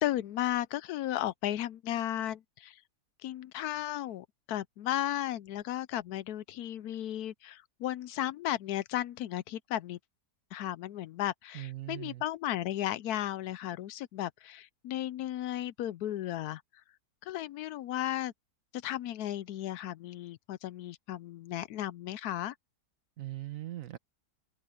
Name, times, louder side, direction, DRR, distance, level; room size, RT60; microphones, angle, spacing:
voice 1, 0.0-2.8 3.2-10.0 10.5-16.6 17.2-18.3 18.7-22.5, left 13 dB, 75° left, 1.0 m, -35 dB
voice 2, 11.5-12.2 23.2-24.0, right 15 dB, 60° right, 1.2 m, -40 dB
omnidirectional pair, 1.7 m